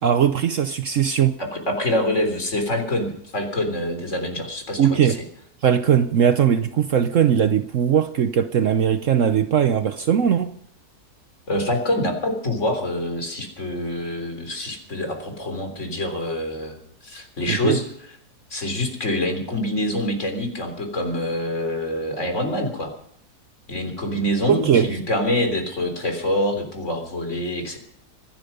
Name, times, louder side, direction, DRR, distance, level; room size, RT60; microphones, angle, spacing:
voice 1, 0.0-1.4 4.8-5.2 5.6-10.5 17.5-17.8 24.5-24.9, right 8 dB, 60° right, 1.0 m, -19 dB
voice 2, 1.4-5.2 11.5-17.8 18.5-22.9 23.7-27.8, left 1 dB, 45° left, 3.9 m, -26 dB
24.5 x 10.5 x 5.4 m
omnidirectional pair, 1.7 m